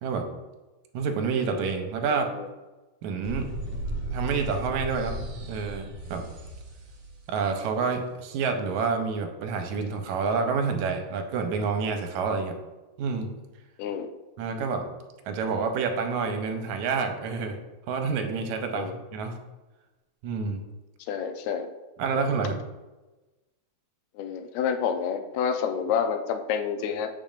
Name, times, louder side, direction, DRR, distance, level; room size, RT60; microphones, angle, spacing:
voice 1, 0.9-2.3 3.0-3.6 4.1-5.2 5.5-6.3 7.3-12.6 13.0-13.3 14.4-14.9 15.3-17.6 17.9-19.4 20.2-20.7 22.0-22.6, right 5 dB, 85° right, 5 dB, 2.1 m, -28 dB
voice 2, 2.1-2.5 13.8-14.1 18.7-19.0 21.0-21.7 22.1-22.2 24.2-27.1, left 7 dB, 80° left, 7 dB, 1.9 m, -29 dB
sound 1, 3.2-7.2, right 1 dB, 45° right, 2.3 m, -35 dB
9.2 x 5.0 x 2.4 m, 1.1 s
omnidirectional pair, 3.3 m